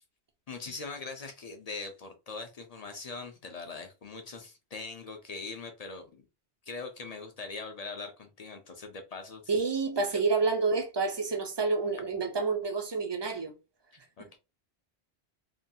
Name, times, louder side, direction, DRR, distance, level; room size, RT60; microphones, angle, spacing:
voice 1, 0.5-6.2 6.6-9.6 14.2-14.4, left 4 dB, 55° left, 0.4 m, -41 dB
voice 2, 9.5-13.5, right 4 dB, 40° right, 0.4 m, -28 dB
2.8 x 2.3 x 2.6 m
omnidirectional pair, 1.1 m